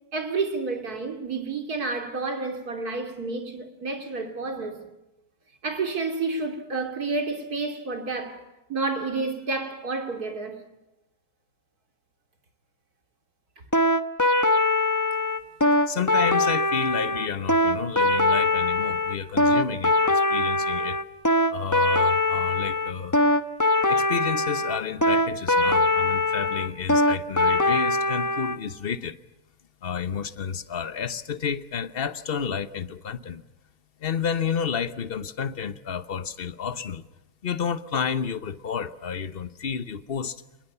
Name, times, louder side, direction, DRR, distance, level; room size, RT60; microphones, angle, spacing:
voice 1, 0.1-4.8 5.6-8.4 8.7-10.6, right 3 dB, 85° right, 3.4 m, -30 dB
sound 1, 13.7-28.6, left 2 dB, 15° left, 0.9 m, -22 dB
voice 2, 15.9-21.0 21.5-23.2 23.9-29.2 29.8-33.4 34.0-37.0 37.4-40.4, left 7 dB, 45° left, 1.1 m, -30 dB
27.5 x 20.5 x 7.0 m
omnidirectional pair, 1.6 m